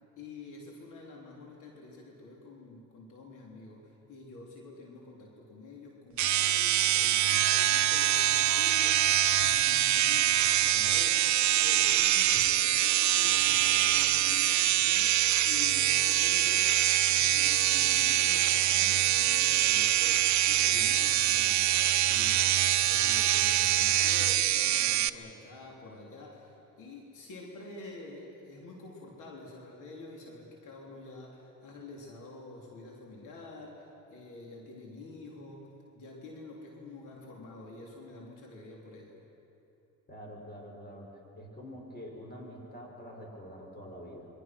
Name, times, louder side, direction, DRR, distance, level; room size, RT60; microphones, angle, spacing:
voice 1, 0.2-16.7 17.0-35.7 36.0-39.2, left 3 dB, 85° left, -1 dB, 3.6 m, -47 dB
sound 1, 6.2-25.1, right 13 dB, 65° right, 0.7 m, -25 dB
voice 2, 40.1-41.1 41.3-44.3, equal, 30° left, 0 dB, 6.5 m, -46 dB
27.5 x 23.5 x 6.2 m, 2.8 s
cardioid pair, 90°, 30 cm